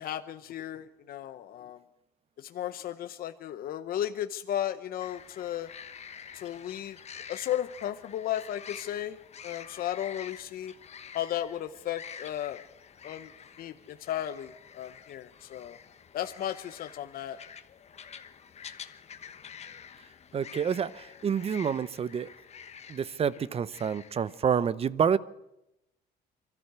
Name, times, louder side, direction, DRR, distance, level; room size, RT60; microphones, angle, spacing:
voice 1, 0.0-1.8 2.4-5.7 6.3-7.0 7.3-10.7 11.1-12.6 13.0-13.3 13.6-15.8 16.1-17.4, left 11 dB, 60° left, 9 dB, 0.9 m, -35 dB
sound 1, 5.0-24.4, left 7 dB, 40° left, 1.2 m, -48 dB
voice 2, 20.3-22.3 22.9-25.2, right 7 dB, 35° right, 18 dB, 0.7 m, -28 dB
24.0 x 13.5 x 8.1 m, 0.89 s
cardioid pair, 110°, 17 cm